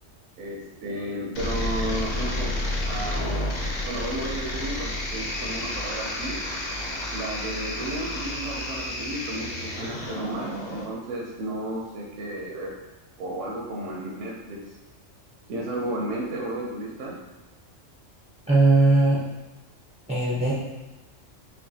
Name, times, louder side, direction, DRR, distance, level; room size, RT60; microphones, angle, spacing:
voice 1, 0.4-2.6 2.9-3.2 3.8-6.5 7.1-12.8 13.2-14.6 15.5-17.2, right 1 dB, 75° right, -2 dB, 0.9 m, -33 dB
sound 1, 1.3-10.8, left 1 dB, 45° left, 0.6 m, -30 dB
voice 2, 18.5-19.2 20.1-20.5, right 2 dB, 10° right, -8 dB, 0.3 m, -19 dB
5.7 x 2.1 x 2.7 m, 1.1 s
omnidirectional pair, 1.3 m